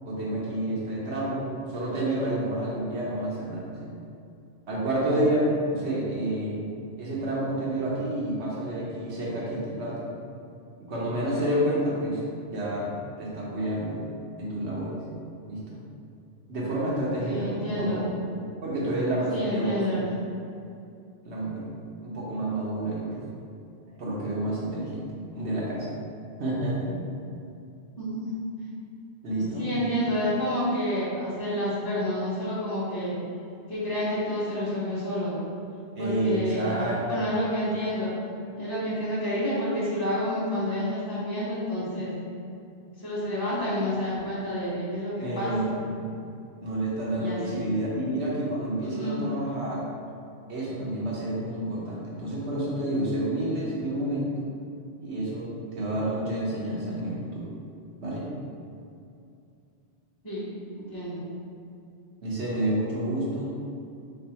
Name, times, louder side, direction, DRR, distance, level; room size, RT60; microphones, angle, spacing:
voice 1, 0.0-3.9 4.7-6.6 7.0-10.1 10.8-12.2 12.5-12.9 13.2-14.0 14.4-15.0 15.5-15.8 16.5-18.0 18.6-19.8 21.2-21.7 22.0-23.3 24.0-25.9 26.4-26.9 29.2-29.6 35.9-37.3 45.2-45.7 46.6-49.9 50.5-54.5 55.0-57.5 58.0-58.2 62.2-63.7, right 1 dB, 80° right, -6 dB, 1.3 m, -29 dB
voice 2, 17.2-18.0 19.3-20.1 28.0-28.3 29.6-33.1 33.7-35.4 36.0-36.7 37.0-38.1 38.6-42.1 43.0-45.5 47.2-47.7 48.8-49.2 60.2-60.5 60.9-61.2, equal, 20° left, -9 dB, 1.2 m, -29 dB
3.5 x 3.2 x 4.3 m, 2.5 s
omnidirectional pair, 1.1 m